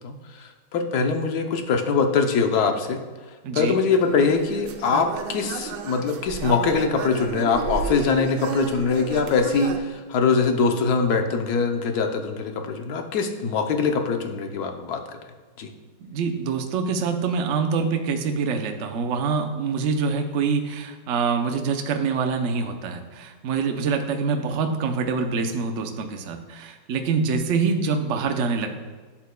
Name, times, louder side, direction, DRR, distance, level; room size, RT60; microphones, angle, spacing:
voice 1, 0.0-3.0 3.5-15.0 15.6-15.7, left 5 dB, 65° left, 5 dB, 1.2 m, -23 dB
voice 2, 3.4-3.8 16.0-28.7, right 5 dB, 60° right, 4 dB, 0.9 m, -25 dB
sound 1, 3.9-9.8, right 6 dB, 90° right, 1.4 m, -33 dB
11.0 x 7.3 x 2.2 m, 1.4 s
omnidirectional pair, 1.9 m